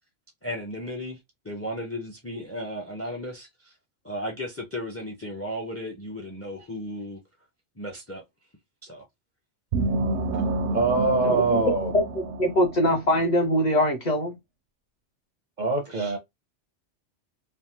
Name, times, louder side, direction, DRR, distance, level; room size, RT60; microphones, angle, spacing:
voice 1, 0.4-1.2 1.4-3.7 4.0-7.2 7.8-8.2 8.8-9.0 15.9-16.2, equal, 15° left, 0.5 m, -35 dB
sound 1, 9.7-13.3, right 2 dB, 80° right, 0.9 m, -29 dB
voice 2, 10.7-11.9 15.6-16.2, right 3 dB, 50° right, 0.6 m, -24 dB
voice 3, 11.2-11.6 11.9-12.0 12.4-14.3, equal, 40° left, 0.9 m, -22 dB
3.3 x 2.0 x 2.8 m
omnidirectional pair, 1.2 m